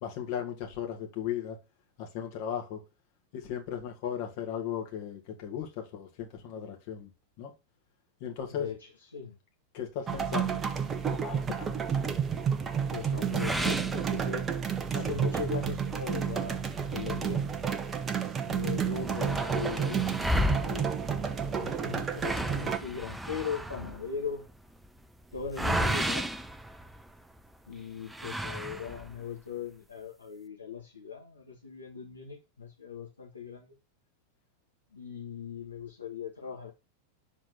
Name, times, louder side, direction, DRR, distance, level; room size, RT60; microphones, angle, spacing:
voice 1, 0.0-1.6 2.0-2.8 3.3-7.1 7.4-7.5 8.2-8.7 9.7-10.6 11.1-11.8, left 9 dB, 45° left, 2.1 m, -36 dB
voice 2, 8.5-9.4 12.9-14.4 14.9-17.4 18.5-21.0 21.6-24.4 25.3-26.3 27.7-33.7 34.9-36.7, left 6 dB, 75° left, 1.6 m, -39 dB
sound 1, 10.1-22.8, right 7 dB, 20° right, 0.9 m, -31 dB
sound 2, 13.3-14.8 15.2-15.3 15.8-15.9 16.7-18.0 18.3-18.4 18.6-27.4 28.1-29.2, equal, 5° right, 0.5 m, -34 dB
6.3 x 4.3 x 6.2 m
figure-of-eight pair, 90°, 0 cm